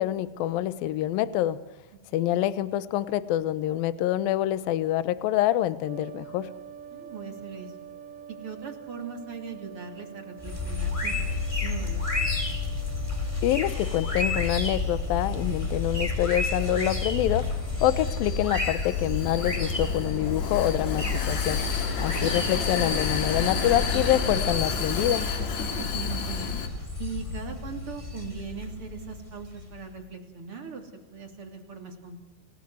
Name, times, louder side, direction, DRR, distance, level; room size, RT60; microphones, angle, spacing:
voice 1, 0.0-1.6 2.1-6.5 13.4-21.6 22.0-25.3, left 13 dB, 85° left, 15 dB, 2.0 m, -26 dB
sound 1, 5.9-23.1, right 8 dB, 70° right, 3.3 m, -48 dB
voice 2, 6.9-7.8 8.4-12.4 22.2-22.3 25.7-26.4 27.0-32.2, right 5 dB, 35° right, 3 dB, 3.0 m, -40 dB
sound 2, 10.4-29.8, left 3 dB, 10° left, 2.1 m, -30 dB
Vehicle, 17.3-26.7, left 5 dB, 45° left, 2.8 m, -32 dB
28.5 x 18.5 x 8.0 m, 1.0 s
omnidirectional pair, 5.7 m